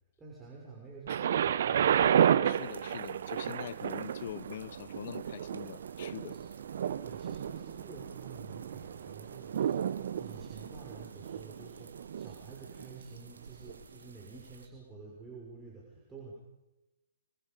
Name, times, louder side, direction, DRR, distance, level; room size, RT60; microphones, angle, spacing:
voice 1, 0.2-2.1 6.1-6.5 7.0-16.3, right 4 dB, 10° right, 6.0 m, -49 dB
Thunder, 1.1-12.9 13.7-13.8, right 9 dB, 60° right, 1.1 m, -32 dB
voice 2, 2.4-6.3, left 11 dB, 55° left, 0.8 m, -43 dB
sound 1, 2.5-14.7, right 4 dB, 75° right, 2.0 m, -55 dB
27.0 x 25.0 x 5.5 m
figure-of-eight pair, 125°, 0 cm